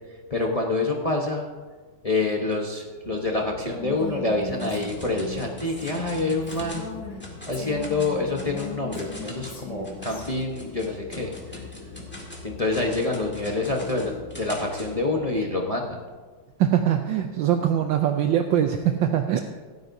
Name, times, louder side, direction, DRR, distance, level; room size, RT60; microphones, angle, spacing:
voice 1, 0.3-1.5 2.0-6.9 7.5-11.3 12.4-16.0 19.3-19.4, left 2 dB, 35° left, 0 dB, 0.6 m, -27 dB
sound 1, 3.0-15.5, left 3 dB, 75° left, 3.3 m, -43 dB
Female speech woman speaking, 3.7-7.2 7.5-10.2, left 5 dB, 90° left, 3.4 m, -39 dB
sound 2, 4.6-6.9 7.2-7.6 7.8-14.9, left 1 dB, 5° left, 1.8 m, -42 dB
voice 2, 16.6-19.4, right 10 dB, 70° right, 6 dB, 1.3 m, -22 dB
26.0 x 9.2 x 2.7 m, 1.4 s
omnidirectional pair, 2.3 m